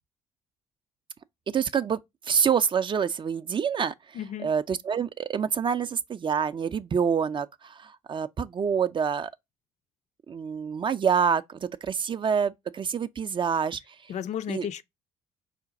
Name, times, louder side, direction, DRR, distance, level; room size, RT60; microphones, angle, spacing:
voice 1, 1.5-2.0 2.2-9.3 10.3-13.8 14.5-14.7, right 7 dB, 35° right, 0.4 m, -27 dB
voice 2, 4.1-4.5 14.1-14.8, left 9 dB, 50° left, 0.5 m, -33 dB
5.0 x 2.2 x 3.8 m
hypercardioid pair, 50°, 15 cm